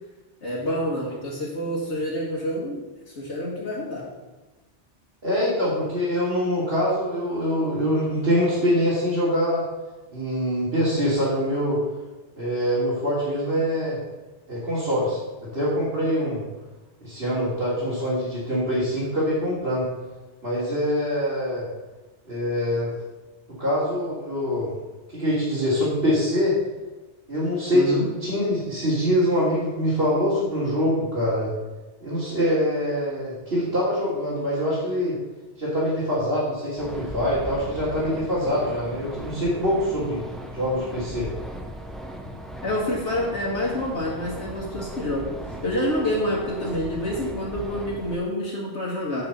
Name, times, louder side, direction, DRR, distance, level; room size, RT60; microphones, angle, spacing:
voice 1, 0.4-4.0 27.7-28.1 42.6-49.3, left 1 dB, 75° left, -6 dB, 2.2 m, -28 dB
voice 2, 5.2-9.6 10.1-11.8 12.4-14.0 14.5-16.4 17.0-19.9 20.4-21.7 22.2-22.9 23.6-24.7 25.1-26.5 27.3-31.5 32.0-35.2 35.6-40.2 40.5-41.3, equal, 60° right, -9 dB, 3.2 m, -24 dB
sound 1, 36.8-48.1, equal, ahead, 0.7 m, -38 dB
8.7 x 6.1 x 6.9 m, 1.1 s
omnidirectional pair, 1.2 m